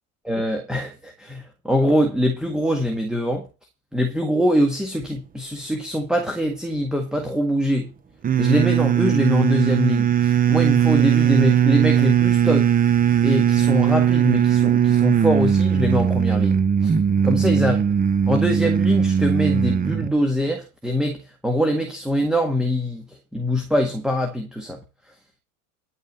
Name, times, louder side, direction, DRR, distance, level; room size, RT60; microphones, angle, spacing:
voice 1, 0.3-3.5 3.9-7.9 8.4-12.7 13.2-16.9 17.2-17.8 18.3-21.2 21.4-23.0 23.3-24.8, equal, ahead, 1.8 m, -23 dB
sound 1, 8.2-20.1, right 8 dB, 20° right, 0.8 m, -19 dB
10.5 x 5.4 x 8.1 m
hypercardioid pair, 110°, 43 cm